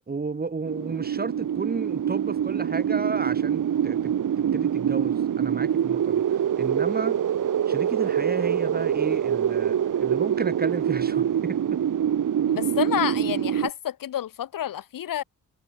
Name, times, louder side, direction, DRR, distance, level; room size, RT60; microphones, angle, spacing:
voice 1, 0.1-7.2 7.7-11.8, right 4 dB, 30° right, 2.3 m, -33 dB
sound 1, 0.6-13.7, right 9 dB, 70° right, 3.3 m, -25 dB
voice 2, 12.5-15.2, left 11 dB, 80° left, 2.2 m, -29 dB
cardioid pair, 120°, 33 cm